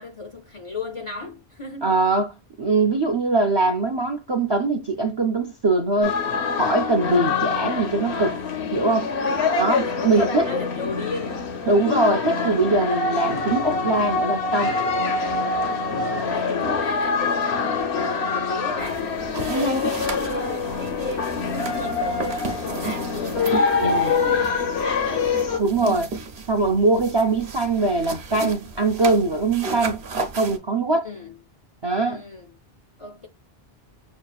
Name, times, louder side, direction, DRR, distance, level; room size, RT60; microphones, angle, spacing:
voice 1, 0.0-2.0 9.3-11.5 15.5-19.1 19.5-25.4 31.0-31.4 32.0-32.5 33.0-33.3, left 3 dB, 45° left, 0.4 m, -35 dB
voice 2, 1.8-2.3 2.6-6.2 6.5-8.4 8.7-9.1 9.6-10.5 11.7-14.7 19.5-19.9 23.8-24.1 25.6-26.1 26.5-30.0 30.4-31.1 31.8-32.2, right 2 dB, 45° right, 0.3 m, -22 dB
sound 1, 6.0-25.6, left 4 dB, 85° left, 1.0 m, -25 dB
sound 2, 18.8-30.6, right 3 dB, 75° right, 1.0 m, -34 dB
6.2 x 2.3 x 2.3 m
omnidirectional pair, 1.1 m